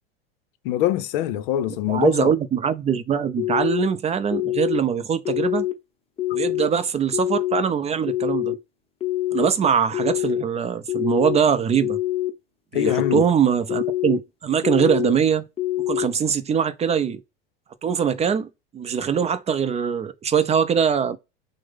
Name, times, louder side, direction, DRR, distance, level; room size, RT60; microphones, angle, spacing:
voice 1, 0.6-2.3 12.7-13.2, left 12 dB, 65° left, 0.6 m, -23 dB
voice 2, 1.9-5.7 6.3-8.5 9.3-12.0 12.7-15.5 15.9-17.2 17.8-18.5 18.7-21.2, right 7 dB, 20° right, 0.5 m, -22 dB
sound 1, 3.4-3.9 4.3-4.8 5.2-5.7 6.2-6.7 7.1-7.6 8.1-8.5 9.0-9.5 9.9-10.4 10.9-11.4 11.8-12.3 12.8-13.2 13.7-14.2 14.6-15.1 15.6-16.1, left 15 dB, 20° left, 0.8 m, -25 dB
6.2 x 2.1 x 3.5 m
hypercardioid pair, 100°, 29 cm